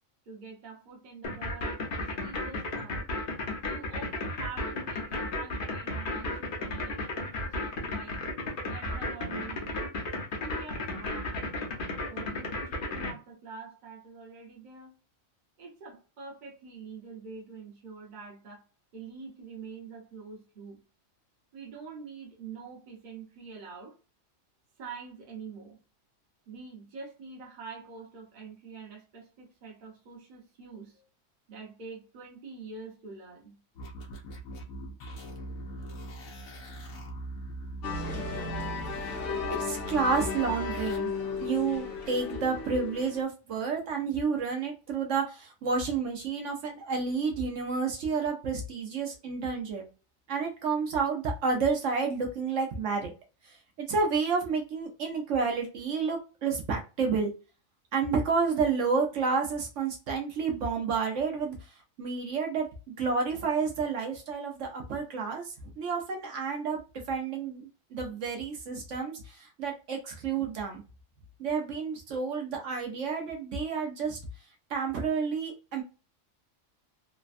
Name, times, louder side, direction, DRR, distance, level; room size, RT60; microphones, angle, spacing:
voice 1, 0.2-3.1 3.6-8.2 8.7-9.9 10.4-11.5 12.1-14.9 15.6-18.6 18.9-20.8 21.5-24.0 24.8-25.8 26.5-31.1 31.5-33.5, right 5 dB, 40° right, 0.9 m, -45 dB
sound 1, 1.2-13.1, left 2 dB, 50° left, 0.8 m, -33 dB
sound 2, 33.8-41.0, right 1 dB, 90° left, 1.1 m, -41 dB
sound 3, 37.8-43.2, left 4 dB, 65° left, 1.2 m, -34 dB
voice 2, 39.5-41.1 41.4-49.8 50.3-53.1 53.4-57.3 57.9-62.7 63.0-66.8 67.1-70.8 71.4-74.2 74.7-75.8, right 5 dB, 65° right, 1.0 m, -30 dB
3.2 x 2.1 x 2.5 m
omnidirectional pair, 1.4 m